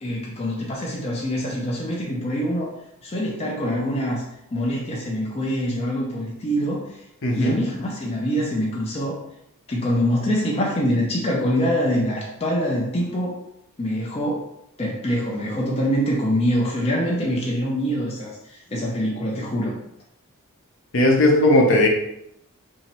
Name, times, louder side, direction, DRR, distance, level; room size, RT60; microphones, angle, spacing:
voice 1, 0.0-2.7 3.0-4.2 4.5-7.0 7.3-9.2 9.7-13.4 13.8-14.5 14.8-19.8, equal, 25° left, -3 dB, 0.5 m, -24 dB
voice 2, 7.2-7.6 20.9-21.9, left 1 dB, 55° left, 1 dB, 0.8 m, -17 dB
3.0 x 2.7 x 4.2 m, 0.80 s
head